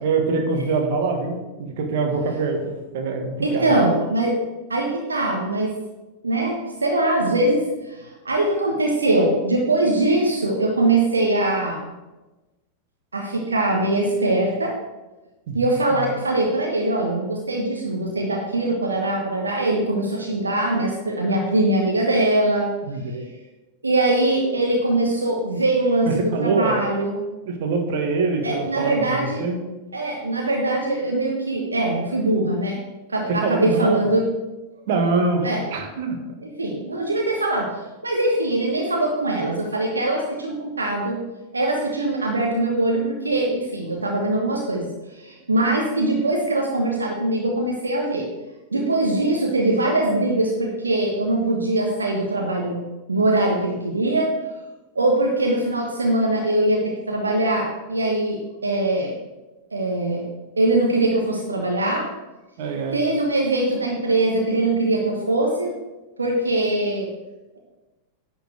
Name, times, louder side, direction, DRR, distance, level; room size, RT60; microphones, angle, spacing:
voice 1, 0.0-3.8 15.5-16.1 22.9-23.2 26.1-26.8 27.5-29.6 33.3-34.1 34.9-36.2 62.6-63.0, right 4 dB, 50° right, 3 dB, 1.6 m, -24 dB
voice 2, 3.4-4.4 4.7-5.7 6.2-11.9 13.1-14.7 15.5-22.7 23.1-23.2 23.8-27.2 28.4-29.4 29.9-32.8 33.1-34.2 35.4-35.6 36.4-41.2 41.5-48.3 48.7-54.3 54.9-59.1 59.7-60.3 60.6-62.1 62.9-65.8 66.2-67.1, right 2 dB, 75° right, 0 dB, 1.2 m, -22 dB
10.5 x 4.5 x 6.3 m, 1.1 s
figure-of-eight pair, 90°, 0 cm